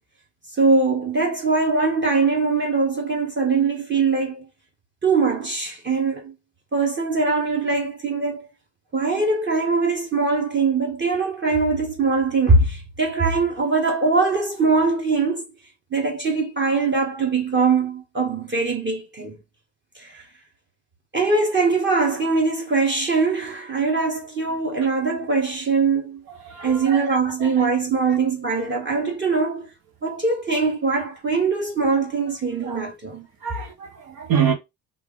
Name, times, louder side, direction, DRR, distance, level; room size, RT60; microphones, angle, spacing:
voice 1, 0.6-4.4 5.0-6.3 6.7-8.5 8.9-15.4 15.9-19.4 20.0-20.2 21.1-26.2 26.6-29.7 30.0-33.3, right 4 dB, 25° right, 1.1 m, -22 dB
voice 2, 26.4-27.5 32.6-32.8 33.4-34.5, right 7 dB, 60° right, 1.1 m, -26 dB
3.2 x 2.5 x 3.6 m
supercardioid pair, 65°, 41 cm